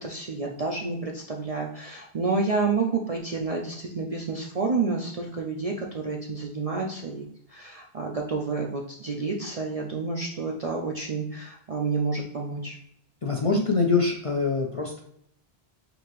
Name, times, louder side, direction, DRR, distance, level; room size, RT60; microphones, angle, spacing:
voice 1, 0.0-12.8, right 4 dB, 45° right, 0 dB, 0.5 m, -29 dB
voice 2, 13.2-15.0, left 4 dB, 40° left, 0 dB, 0.5 m, -24 dB
5.2 x 2.8 x 3.0 m, 0.71 s
omnidirectional pair, 1.1 m